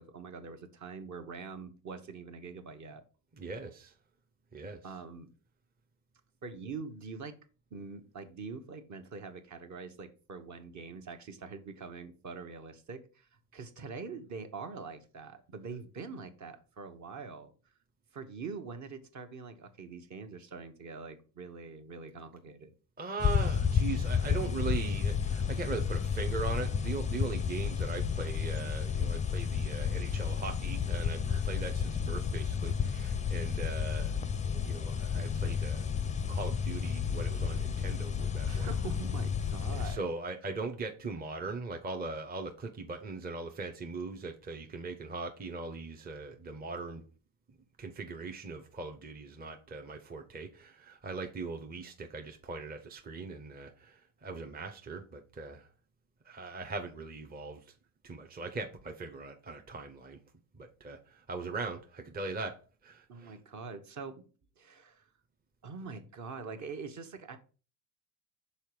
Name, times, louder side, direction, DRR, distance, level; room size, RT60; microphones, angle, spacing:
voice 1, 0.0-3.0 4.8-5.3 6.4-7.3 7.7-17.5 18.1-22.7 31.3-31.4 38.5-40.0 63.1-64.3 64.6-65.1 65.6-67.4, right 4 dB, 40° right, 1.2 m, -44 dB
voice 2, 3.4-3.9 4.5-4.8 23.0-34.1 34.4-35.9 36.3-38.7 39.7-47.0 47.8-55.7 56.2-57.7 58.0-60.2 60.6-63.4, right 3 dB, 20° right, 0.8 m, -40 dB
sound 1, 23.2-40.0, left 7 dB, 15° left, 0.5 m, -31 dB
5.6 x 4.1 x 4.9 m
supercardioid pair, 90°, 45 cm